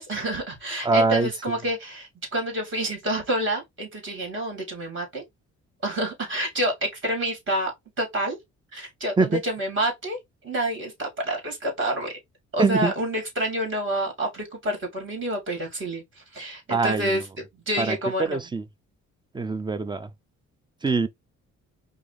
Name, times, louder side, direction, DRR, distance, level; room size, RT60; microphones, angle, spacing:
voice 1, 0.0-5.2 5.8-7.7 8.0-8.4 8.7-9.1 9.4-10.2 10.4-12.1 12.5-16.0 16.3-17.2 17.7-18.4, right 1 dB, 40° right, 2.9 m, -28 dB
voice 2, 0.8-1.3 9.2-9.4 12.6-12.9 16.7-17.2 17.8-18.6 19.3-20.1 20.8-21.1, right 4 dB, 15° right, 0.5 m, -23 dB
4.8 x 2.7 x 3.4 m
cardioid pair, 90°, 30 cm